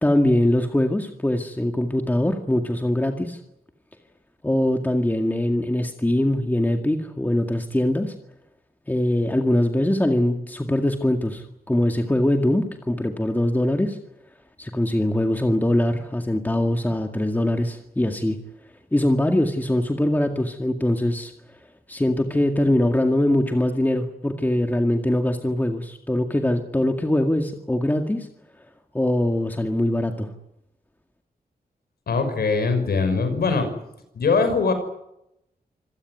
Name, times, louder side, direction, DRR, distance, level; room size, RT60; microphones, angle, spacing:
voice 1, 0.0-3.4 4.4-8.1 8.9-14.0 14.6-18.4 18.9-21.3 21.9-28.3 28.9-30.3, left 1 dB, 10° left, 4 dB, 2.0 m, -22 dB
voice 2, 32.1-33.7 34.1-34.7, left 4 dB, 90° left, 8 dB, 5.9 m, -21 dB
26.5 x 18.0 x 9.6 m, 0.85 s
wide cardioid pair, 120°, 16 cm